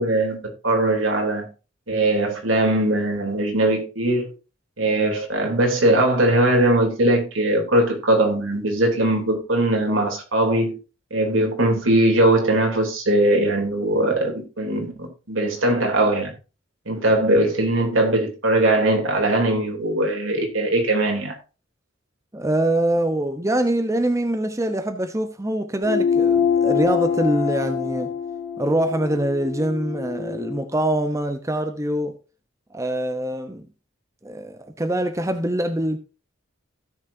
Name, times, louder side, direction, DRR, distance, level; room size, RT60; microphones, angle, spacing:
voice 1, 0.0-1.5 1.9-4.3 4.8-10.8 11.1-16.3 16.9-21.3, right 1 dB, 75° right, 3.2 m, -20 dB
voice 2, 22.3-28.1 28.6-32.1 32.7-33.7 34.2-36.0, right 1 dB, 15° right, 0.8 m, -24 dB
sound 1, 25.8-30.7, left 7 dB, 80° left, 3.2 m, -24 dB
16.5 x 6.4 x 2.7 m
head